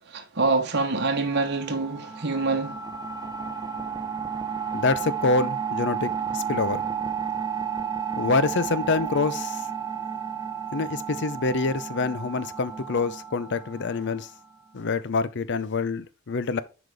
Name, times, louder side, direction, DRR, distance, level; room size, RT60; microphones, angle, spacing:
voice 1, 0.1-2.8, right 3 dB, 55° right, 1.2 m, -25 dB
sound 1, 1.1-14.5, right 7 dB, 20° right, 0.8 m, -32 dB
voice 2, 4.7-6.8 8.2-9.7 10.7-14.3 14.7-16.6, left 3 dB, 55° left, 0.6 m, -26 dB
7.7 x 5.1 x 3.5 m
head